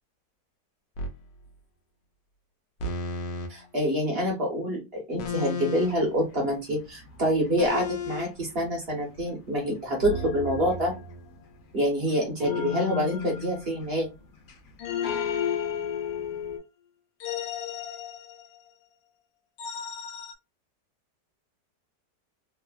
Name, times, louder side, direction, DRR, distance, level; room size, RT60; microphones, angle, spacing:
sound 1, 1.0-1.2 2.8-3.5 5.2-6.1 7.6-8.3 10.0-11.5 12.4-14.0 14.8-16.4 17.2-18.7 19.6-20.3, left 5 dB, 90° left, 1.4 m, -34 dB
voice 1, 3.5-10.9 11.7-14.1, equal, 45° right, -1 dB, 0.9 m, -27 dB
sound 2, 5.8-10.0 10.3-11.1 11.6-12.2 12.4-14.7 15.0-16.6, left 8 dB, 65° left, 1.1 m, -35 dB
3.2 x 2.0 x 2.3 m, 0.25 s
omnidirectional pair, 1.9 m